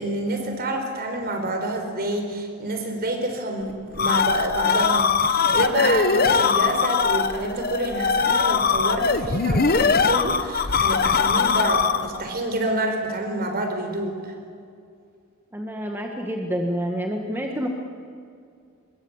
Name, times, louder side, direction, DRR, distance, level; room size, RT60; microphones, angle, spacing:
voice 1, 0.0-14.3, right 1 dB, 45° right, 5 dB, 4.2 m, -27 dB
sound 1, 3.7-12.2, left 6 dB, 45° left, 1.0 m, -21 dB
voice 2, 15.5-17.7, equal, 10° right, 2 dB, 1.6 m, -28 dB
25.0 x 22.0 x 7.3 m, 2.4 s
head